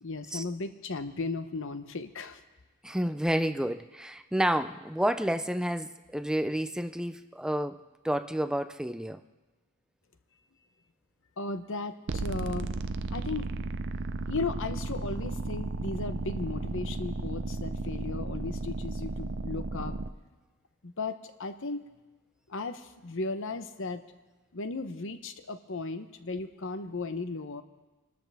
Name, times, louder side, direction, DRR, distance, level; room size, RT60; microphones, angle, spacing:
voice 1, 0.0-2.4 11.4-12.7 13.1-13.5 14.3-20.0 20.8-21.8 22.5-24.0 24.5-27.6, left 3 dB, 60° left, 10 dB, 0.9 m, -36 dB
voice 2, 2.8-7.8 8.0-9.2, right 1 dB, 5° right, 10 dB, 0.4 m, -30 dB
sound 1, 12.1-20.1, right 3 dB, 55° right, 0.5 m, -34 dB
26.5 x 13.0 x 3.5 m, 1.2 s
head